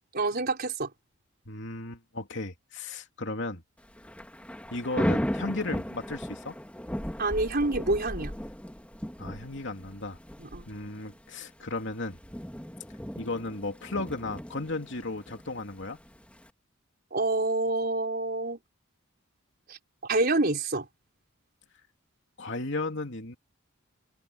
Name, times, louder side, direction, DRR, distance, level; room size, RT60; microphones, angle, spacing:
voice 1, 0.1-0.9 7.2-8.4 10.4-10.7 17.1-18.6 19.7-20.9, right 2 dB, 50° right, 4.2 m, -27 dB
voice 2, 1.5-3.6 4.7-6.6 9.2-10.2 10.7-12.2 13.2-16.0 22.4-23.3, left 2 dB, 60° left, 2.9 m, -35 dB
Thunder / Rain, 3.8-16.5, equal, 5° left, 2.4 m, -36 dB
head